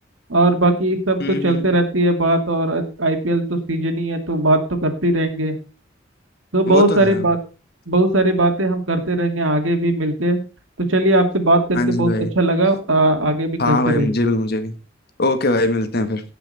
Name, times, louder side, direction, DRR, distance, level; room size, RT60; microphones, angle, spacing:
voice 1, 0.3-5.5 6.5-7.4 7.9-10.4 10.9-14.1, right 1 dB, 85° right, 6 dB, 2.5 m, -19 dB
voice 2, 1.2-1.7 6.7-7.3 11.7-12.3 13.6-14.7 15.2-16.2, left 2 dB, 55° left, 9 dB, 1.6 m, -21 dB
17.5 x 5.9 x 4.2 m, 0.32 s
head